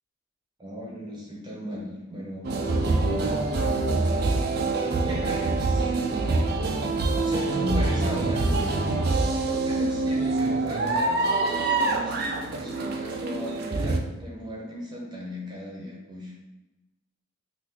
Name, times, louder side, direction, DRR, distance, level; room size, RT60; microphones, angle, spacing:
voice 1, 0.6-2.9 5.0-6.0 7.2-8.5 9.4-16.3, equal, 20° right, -4 dB, 0.7 m, -36 dB
sound 1, 2.4-14.0, right 3 dB, 50° right, 0.3 m, -25 dB
2.9 x 2.5 x 3.6 m, 0.99 s
head